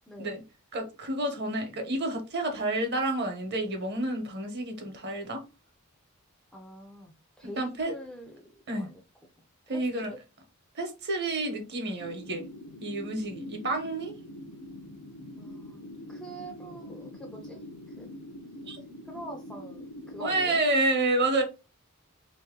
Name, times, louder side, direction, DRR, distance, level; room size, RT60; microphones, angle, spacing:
voice 1, 0.7-5.4 7.6-7.9 8.7-8.9 9.7-10.1 10.8-12.4 12.8-14.1 18.7-18.8 20.2-21.4, right 2 dB, 50° right, 1.0 m, -29 dB
voice 2, 6.5-9.0 9.7-9.9 15.4-15.8 16.1-17.6 17.9-18.1 19.1-20.6, right 1 dB, 5° left, 0.4 m, -44 dB
sound 1, 12.0-20.6, left 1 dB, 65° left, 0.6 m, -44 dB
3.2 x 2.8 x 3.6 m
head